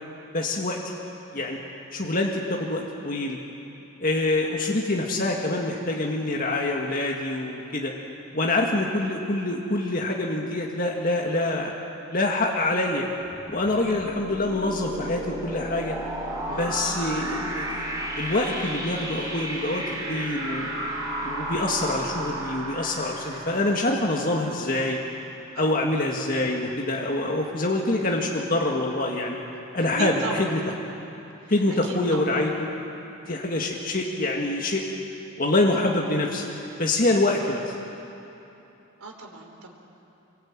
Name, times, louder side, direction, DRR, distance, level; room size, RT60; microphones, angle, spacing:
voice 1, 0.3-0.8 1.3-1.6 1.9-3.4 4.0-7.9 8.3-11.7 12.1-13.1 13.5-16.0 16.5-17.8 18.2-20.7 21.2-25.0 25.6-29.4 29.7-30.7 31.5-32.7 33.3-34.8 35.4-36.5 36.8-37.7, left 2 dB, 40° left, -1 dB, 2.0 m, -25 dB
sound 1, 13.2-24.9, right 1 dB, 15° right, 3.8 m, -33 dB
voice 2, 16.5-16.8 25.5-25.8 30.0-30.6 31.4-31.5 31.8-32.2 39.0-39.7, right 2 dB, 85° right, 1 dB, 4.1 m, -35 dB
26.0 x 22.5 x 9.0 m, 3.0 s
head